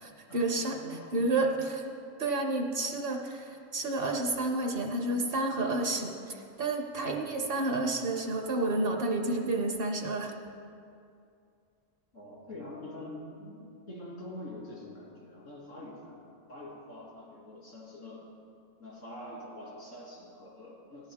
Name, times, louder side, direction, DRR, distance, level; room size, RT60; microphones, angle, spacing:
voice 1, 0.0-0.8 1.1-1.8 2.2-10.3, right 2 dB, 50° right, 3 dB, 1.0 m, -30 dB
voice 2, 0.8-1.2 2.4-2.5 7.0-7.2 12.1-18.3 18.8-21.1, left 1 dB, 80° left, -5 dB, 3.0 m, -45 dB
15.0 x 11.5 x 3.5 m, 2.5 s
omnidirectional pair, 1.3 m